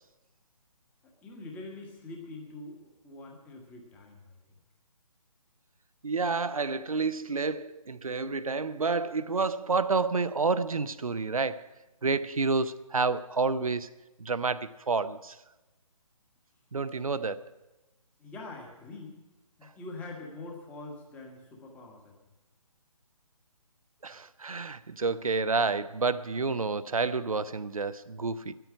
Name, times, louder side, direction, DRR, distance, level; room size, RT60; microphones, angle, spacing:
voice 1, 1.2-4.4 18.2-19.2 19.6-22.1, left 2 dB, 10° left, 1.4 m, -44 dB
voice 2, 6.0-11.7 12.0-13.9 14.2-15.4 16.7-17.4 24.0-28.5, right 4 dB, 70° right, 0.7 m, -29 dB
10.0 x 9.2 x 9.7 m
figure-of-eight pair, 145°, 19 cm